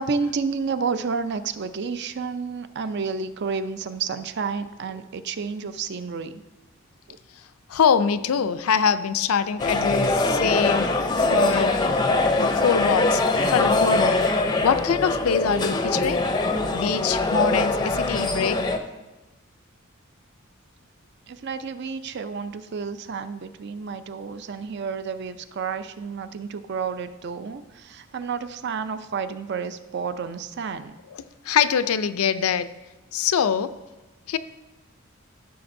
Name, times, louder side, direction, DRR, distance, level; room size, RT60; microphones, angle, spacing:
voice 1, 0.0-6.4 7.1-7.2 21.3-30.9, right 5 dB, 50° right, 11 dB, 0.4 m, -30 dB
voice 2, 7.7-10.9 11.2-11.8 12.4-13.2 13.5-14.2 14.6-16.2 16.7-18.6 31.5-32.7 33.1-33.7 34.3-34.4, left 7 dB, 85° left, 13 dB, 0.4 m, -23 dB
sound 1, 9.6-18.8, left 2 dB, 20° left, 0.5 m, -22 dB
14.0 x 6.7 x 2.6 m, 1.1 s
head